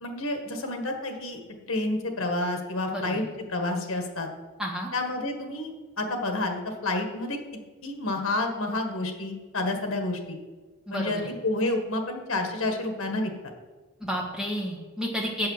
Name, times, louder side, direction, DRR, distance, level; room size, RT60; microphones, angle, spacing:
voice 1, 0.0-1.4 1.7-4.3 4.9-5.7 6.0-7.4 7.8-10.4 10.9-13.3, left 2 dB, 65° left, 4 dB, 1.6 m, -29 dB
voice 2, 2.9-3.2 4.6-4.9 10.9-11.2 14.0-15.5, equal, 5° right, -3 dB, 1.7 m, -31 dB
8.2 x 5.5 x 7.3 m, 1.3 s
head